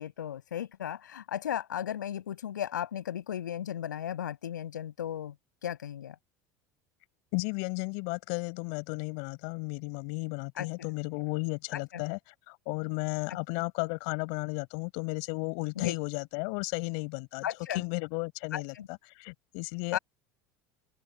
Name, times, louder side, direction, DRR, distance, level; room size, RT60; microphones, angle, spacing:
voice 1, 0.0-5.3 5.6-6.1 10.6-10.9 11.7-12.0 15.8-16.0 17.4-17.8 18.5-18.9 19.9-20.0, left 10 dB, 85° left, 7.6 m, -35 dB
voice 2, 7.3-20.0, left 39 dB, 65° left, 6.4 m, -34 dB
open air
hypercardioid pair, 75°, 10 cm